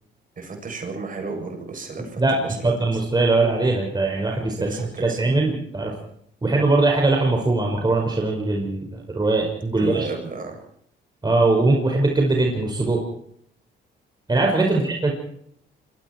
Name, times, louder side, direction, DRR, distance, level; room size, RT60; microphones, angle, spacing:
voice 1, 0.4-3.0 4.6-5.2 9.7-10.6 14.7-14.8, right 4 dB, 45° right, 3 dB, 7.9 m, -33 dB
voice 2, 2.6-5.9 6.4-10.1 11.2-13.0 14.3-15.1, right 2 dB, 20° right, 0 dB, 5.4 m, -21 dB
27.0 x 22.5 x 4.6 m, 0.69 s
cardioid pair, 90°, 20 cm